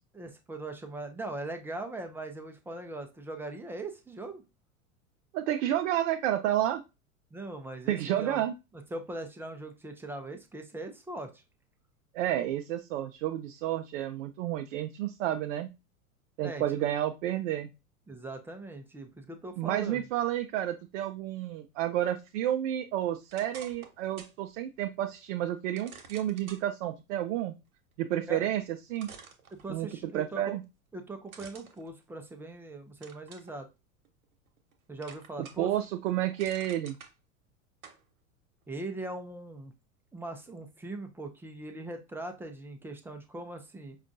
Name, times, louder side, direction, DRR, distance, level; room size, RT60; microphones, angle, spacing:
voice 1, 0.1-4.4 7.3-8.4 8.9-11.4 16.4-16.9 18.1-20.0 28.3-28.5 29.5-30.6 30.9-33.7 34.9-35.7 38.7-39.7 40.1-44.0, right 2 dB, 5° right, 6 dB, 0.4 m, -40 dB
voice 2, 5.3-6.8 7.9-8.5 12.1-15.7 16.4-17.7 19.6-27.5 28.0-28.6 28.9-29.1 29.7-29.9 30.1-30.6 35.6-36.9, right 12 dB, 60° right, 6 dB, 0.5 m, -30 dB
sound 1, 23.3-24.4 24.8-24.9 25.8-26.6 28.4-28.5 29.0-30.0 31.3-32.6 33.0-33.5 34.0-34.7 35.0-35.7 36.1-37.1 37.8-38.0, right 6 dB, 85° right, 0.9 m, -50 dB
5.0 x 2.3 x 2.6 m, 0.26 s
hypercardioid pair, 95°, 42 cm